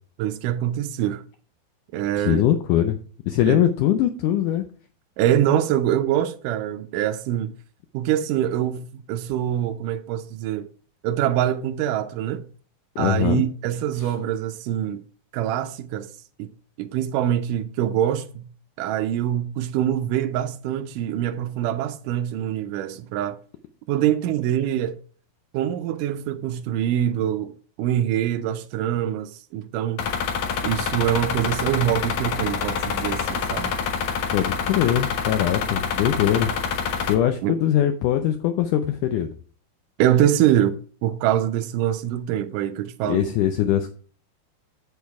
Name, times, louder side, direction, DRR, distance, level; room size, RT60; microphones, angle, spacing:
voice 1, 0.2-1.2 1.9-2.4 3.5-3.6 5.2-7.5 7.9-10.7 11.0-12.4 13.0-15.0 15.3-16.1 16.4-16.5 16.8-18.5 18.8-23.4 23.9-24.9 25.5-30.1 30.6-33.8 37.4-37.5 40.0-43.3, right 11 dB, 85° right, 1.8 m, -24 dB
voice 2, 2.2-3.0 3.3-4.6 13.0-13.4 34.3-36.5 37.1-39.3 43.1-43.9, left 11 dB, 90° left, 1.8 m, -21 dB
sound 1, 30.0-37.1, left 6 dB, 65° left, 1.7 m, -26 dB
8.1 x 6.7 x 4.7 m
omnidirectional pair, 4.4 m